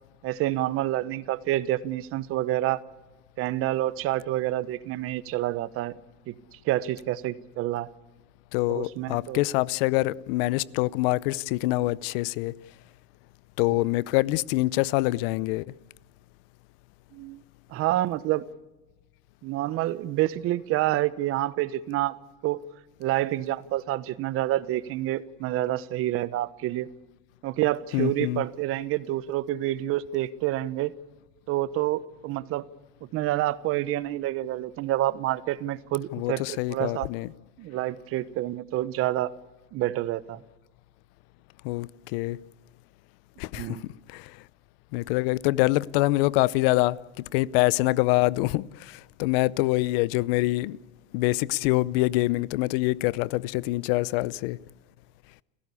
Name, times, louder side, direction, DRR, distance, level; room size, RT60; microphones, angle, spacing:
voice 1, 0.2-2.8 3.4-5.9 6.3-6.4 6.6-7.9 8.7-9.4 13.7-13.8 17.1-17.4 17.7-18.4 19.4-22.6 23.0-26.9 27.4-30.9 31.5-32.7 33.0-37.1 37.6-39.3 39.7-40.4 43.5-43.8, right 15 dB, 40° right, 1.1 m, -28 dB
voice 2, 8.5-12.5 13.6-15.6 27.9-28.4 36.1-37.3 41.6-42.4 43.4-44.4 44.9-50.8 51.1-54.6, left 19 dB, 60° left, 0.7 m, -25 dB
29.5 x 15.5 x 8.4 m
supercardioid pair, 125°, 33 cm